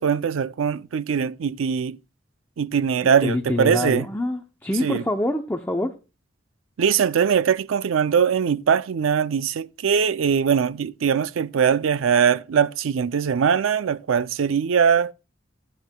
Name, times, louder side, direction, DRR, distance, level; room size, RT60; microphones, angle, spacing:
voice 1, 0.0-2.0 2.6-4.1 4.8-5.0 6.8-15.1, right 7 dB, 85° right, 0.4 m, -21 dB
voice 2, 3.2-5.9, left 1 dB, 10° left, 0.6 m, -25 dB
15.0 x 9.3 x 2.2 m
head